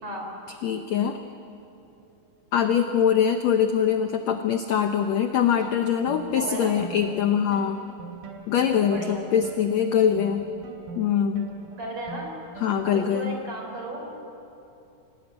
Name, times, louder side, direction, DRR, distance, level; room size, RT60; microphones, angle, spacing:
voice 1, 0.6-1.2 2.5-7.8 8.5-10.5 10.9-11.5 12.6-13.4, left 8 dB, 70° left, 6 dB, 1.7 m, -23 dB
sound 1, 5.6-13.2, right 4 dB, 75° right, 4.8 m, -42 dB
voice 2, 6.4-6.8 8.8-9.2 11.7-12.3 12.8-14.1, right 1 dB, 40° right, 1 dB, 5.0 m, -34 dB
26.0 x 18.0 x 9.6 m, 2.8 s
omnidirectional pair, 4.2 m